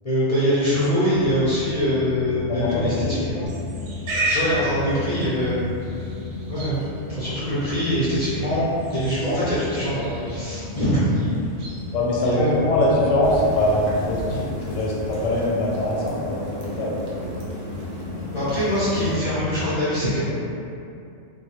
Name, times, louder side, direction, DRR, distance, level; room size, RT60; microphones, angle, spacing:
voice 1, 0.0-3.4 4.3-5.7 6.5-11.1 12.2-12.5 18.3-20.2, equal, 45° left, -12 dB, 0.5 m, -23 dB
sound 1, 1.1-19.6, left 3 dB, 5° left, 0.7 m, -35 dB
voice 2, 2.5-3.2 11.9-17.4, left 1 dB, 90° left, -5 dB, 1.0 m, -23 dB
Livestock farm animals working animals, 3.5-14.3, right 1 dB, 65° right, 0.8 m, -35 dB
sound 2, 13.2-19.2, right 1 dB, 85° right, 0.3 m, -35 dB
2.2 x 2.1 x 2.8 m, 2.6 s
omnidirectional pair, 1.3 m